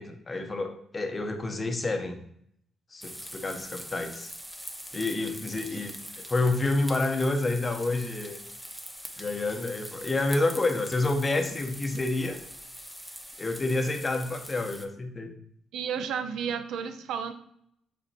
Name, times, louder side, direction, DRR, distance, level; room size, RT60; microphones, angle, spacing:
voice 1, 0.0-2.2 2.9-4.3 4.9-5.9 6.3-8.4 9.2-12.4 13.4-15.3, left 2 dB, 20° left, 5 dB, 0.9 m, -28 dB
sound 1, 3.0-14.8, equal, ahead, 0.6 m, -43 dB
voice 2, 15.7-17.3, right 7 dB, 85° right, 8 dB, 0.7 m, -32 dB
7.2 x 4.4 x 4.2 m, 0.68 s
cardioid pair, 150°, 0 cm